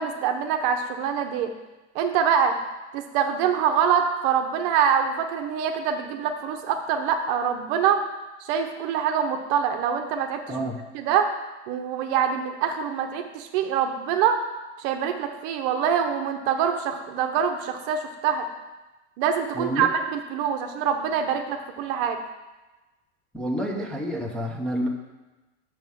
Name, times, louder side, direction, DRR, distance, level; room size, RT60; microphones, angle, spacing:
voice 1, 0.0-1.5 1.9-2.6 2.9-8.0 8.4-10.6 10.9-11.3 11.7-14.4 14.8-18.5 19.2-22.2, right 8 dB, 50° right, 6 dB, 0.9 m, -25 dB
voice 2, 19.5-19.9 23.3-24.9, equal, ahead, -3 dB, 0.9 m, -28 dB
6.2 x 6.0 x 7.1 m, 1.1 s
supercardioid pair, 140°, 35 cm